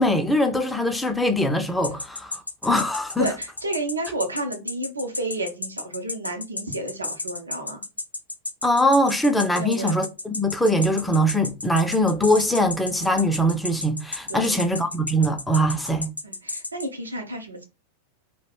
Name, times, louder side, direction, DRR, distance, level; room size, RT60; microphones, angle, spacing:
voice 1, 0.0-3.3 8.6-16.1, equal, 5° left, 0.4 m, -22 dB
sound 1, 1.8-16.9, left 2 dB, 80° left, 0.3 m, -32 dB
voice 2, 3.2-7.8 9.5-10.0 14.3-14.7 16.2-17.6, right 1 dB, 80° right, 0.6 m, -31 dB
2.4 x 2.1 x 3.2 m
figure-of-eight pair, 90°, 0 cm